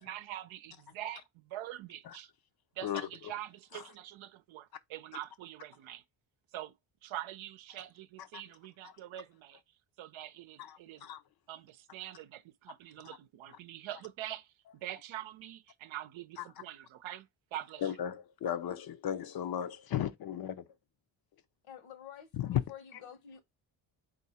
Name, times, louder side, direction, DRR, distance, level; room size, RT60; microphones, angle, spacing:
voice 1, 0.0-2.3 2.7-6.0 6.5-6.8 7.0-9.6 10.0-11.1 11.5-17.9, right 13 dB, 70° right, 0.7 m, -44 dB
voice 2, 10.6-11.2 17.8-20.6 22.3-22.6 22.9-23.0, left 10 dB, 50° left, 0.6 m, -35 dB
voice 3, 21.7-22.3 22.7-23.4, left 9 dB, 70° left, 1.2 m, -49 dB
3.8 x 2.6 x 4.2 m
cardioid pair, 90°, 48 cm